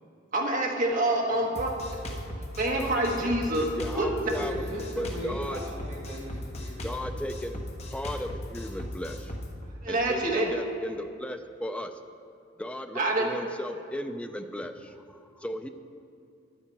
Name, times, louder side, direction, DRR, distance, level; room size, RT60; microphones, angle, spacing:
voice 1, 0.3-1.7 2.1-2.2 2.6-3.7 4.0-4.1 9.8-10.5 12.9-13.2, right 1 dB, 40° right, -1 dB, 1.5 m, -26 dB
Drum kit, 1.6-9.5, left 1 dB, 30° left, 1.0 m, -37 dB
voice 2, 3.2-4.7 5.0-5.6 6.8-7.6 7.9-9.3 9.9-11.9 12.6-15.7, equal, 5° left, 7 dB, 0.4 m, -36 dB
voice 3, 4.4-7.3, equal, 90° right, -2 dB, 1.9 m, -39 dB
11.0 x 8.8 x 4.6 m, 2.5 s
head